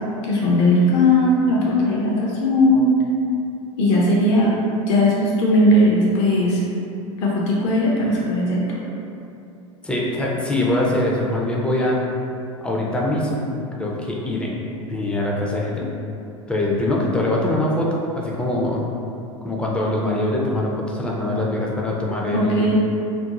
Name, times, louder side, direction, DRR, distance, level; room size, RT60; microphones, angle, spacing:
voice 1, 0.3-3.0 3.8-4.6 4.9-6.6 7.2-8.8 22.3-22.7, left 1 dB, 55° left, -4 dB, 0.6 m, -18 dB
voice 2, 9.8-12.0 12.6-14.6 14.9-15.9 16.5-18.8 19.4-22.7, left 1 dB, 5° left, -3 dB, 0.4 m, -23 dB
2.5 x 2.0 x 2.9 m, 2.7 s
hypercardioid pair, 90°, 17 cm